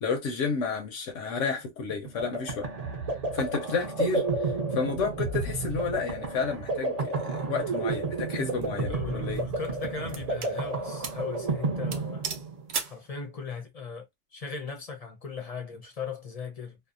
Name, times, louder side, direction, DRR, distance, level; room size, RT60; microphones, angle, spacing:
voice 1, 0.0-2.7 3.3-9.4, left 5 dB, 85° left, 1.0 m, -31 dB
sound 1, 1.9-12.7, right 3 dB, 40° right, 0.7 m, -31 dB
sound 2, 8.3-8.6 9.4-10.6 11.0-11.3 11.6-11.7 11.9-13.0, right 6 dB, 70° right, 0.9 m, -36 dB
voice 2, 8.7-12.3 12.8-14.1 14.3-16.8, left 5 dB, 45° left, 0.5 m, -38 dB
2.7 x 2.0 x 2.5 m
omnidirectional pair, 1.2 m